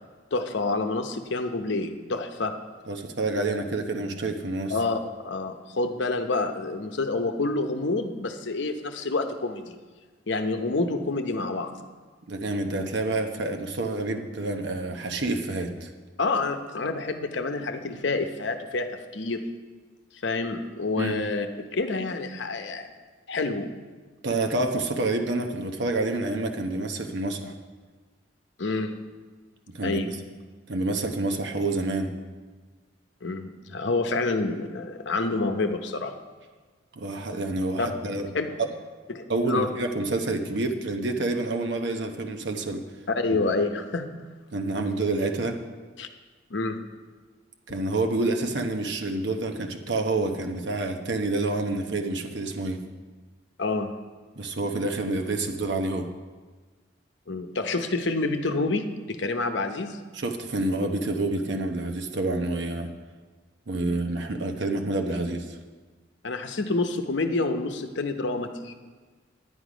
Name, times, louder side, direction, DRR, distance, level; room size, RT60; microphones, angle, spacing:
voice 1, 0.3-2.6 4.7-9.8 10.3-11.8 16.2-19.4 20.2-22.9 23.3-23.7 28.6-28.9 29.8-30.1 33.2-36.1 37.8-37.9 38.3-38.6 39.1-39.7 43.1-44.1 46.0-46.1 46.5-46.8 53.6-53.9 57.3-60.0 63.8-64.0 66.2-68.7, left 3 dB, 65° left, 7 dB, 0.8 m, -28 dB
voice 2, 2.9-4.7 12.3-15.9 21.0-21.2 24.2-27.5 29.7-30.2 30.7-32.1 37.0-38.3 39.3-42.8 44.5-45.6 47.7-52.8 54.4-56.1 60.1-62.9 63.7-65.6, right 2 dB, 65° right, 4 dB, 1.0 m, -28 dB
10.0 x 9.9 x 5.0 m, 1.4 s
head